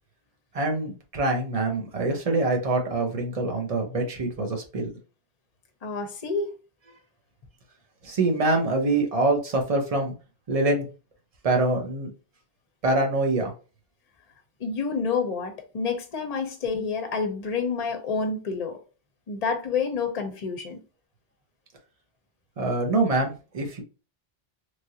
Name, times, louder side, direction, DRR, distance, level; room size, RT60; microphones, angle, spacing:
voice 1, 0.5-4.9 8.0-10.1 10.5-10.9 11.4-12.1 12.8-13.5 22.6-23.8, right 2 dB, 40° right, 0.8 m, -25 dB
voice 2, 5.8-6.5 14.6-18.8 19.3-20.8, left 5 dB, 45° left, 0.7 m, -28 dB
3.1 x 2.5 x 2.7 m
omnidirectional pair, 1.0 m